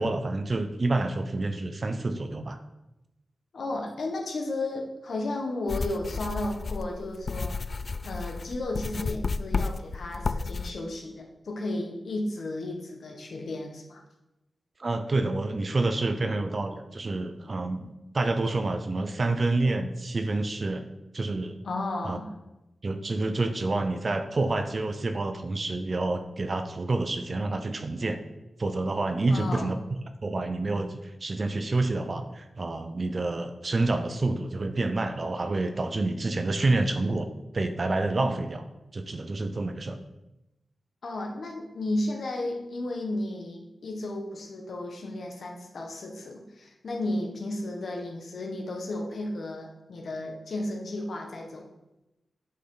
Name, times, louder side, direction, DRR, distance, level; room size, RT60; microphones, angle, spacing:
voice 1, 0.0-2.6 14.8-17.9 18.1-20.8 21.1-21.6 22.0-22.2 22.8-28.2 28.6-29.8 30.2-37.3 37.5-38.7 38.9-40.0, right 2 dB, 35° right, 8 dB, 0.6 m, -28 dB
voice 2, 3.5-7.6 8.0-14.0 21.6-22.3 29.3-29.8 41.0-51.7, left 2 dB, 60° left, 2 dB, 1.4 m, -33 dB
sound 1, 5.7-10.7, left 4 dB, 40° left, 0.3 m, -32 dB
8.4 x 6.6 x 3.9 m, 0.95 s
wide cardioid pair, 145°, 0 cm